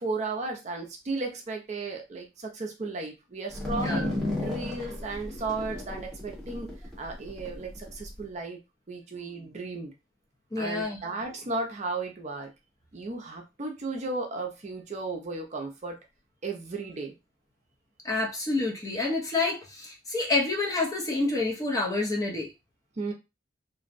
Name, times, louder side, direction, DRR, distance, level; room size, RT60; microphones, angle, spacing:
voice 1, 0.0-6.7 7.0-8.6 8.9-9.9 10.6-12.5 12.9-16.0 16.4-17.1 23.0-23.1, right 3 dB, 35° right, 2 dB, 0.5 m, -34 dB
sound 1, 3.5-8.2, left 2 dB, ahead, 0.9 m, -34 dB
voice 2, 3.7-4.1 10.5-11.0 18.0-22.5, left 3 dB, 20° left, -1 dB, 0.5 m, -28 dB
2.5 x 2.0 x 2.5 m, 0.25 s
head